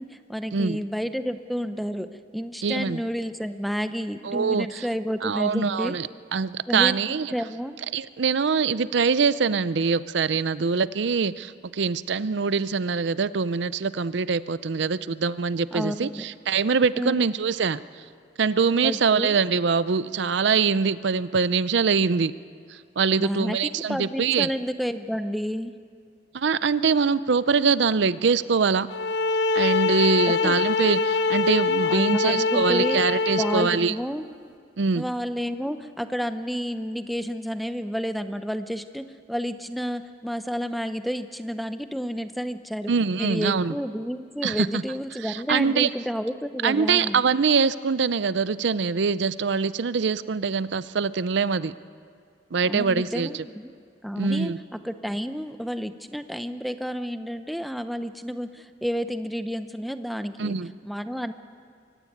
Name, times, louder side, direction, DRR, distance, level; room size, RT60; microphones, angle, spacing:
voice 1, 0.0-6.0 6.7-7.8 15.7-16.3 17.0-17.3 18.8-19.4 23.1-25.8 30.4-30.5 31.9-33.0 33.4-34.2 35.0-42.9 43.2-47.2 52.6-53.7 54.0-60.6 60.8-61.3, equal, ahead, 9 dB, 0.7 m, -30 dB
voice 2, 2.6-3.0 4.2-4.8 5.2-7.3 7.9-17.8 18.4-22.3 22.7-24.5 26.3-28.9 29.5-33.9 34.8-35.0 42.9-43.7 44.4-44.8 45.2-45.9 46.6-51.7 52.5-53.3 54.2-54.6 60.4-60.7, right 5 dB, 70° right, 16 dB, 0.5 m, -23 dB
sound 1, 28.9-33.9, left 4 dB, 70° left, 0.8 m, -24 dB
23.5 x 17.0 x 9.3 m, 2.2 s
head